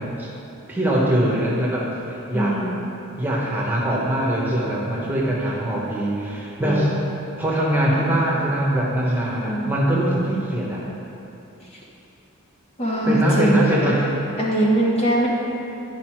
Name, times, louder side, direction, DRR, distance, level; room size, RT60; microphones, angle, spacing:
voice 1, 0.7-2.6 3.2-6.9 7.4-10.8 13.1-14.0, right 1 dB, 10° right, -5 dB, 1.2 m, -22 dB
voice 2, 2.3-2.8 6.6-6.9 9.4-9.7 12.8-13.9 14.4-15.3, right 1 dB, 30° left, -4 dB, 1.0 m, -21 dB
10.5 x 5.3 x 4.6 m, 2.8 s
head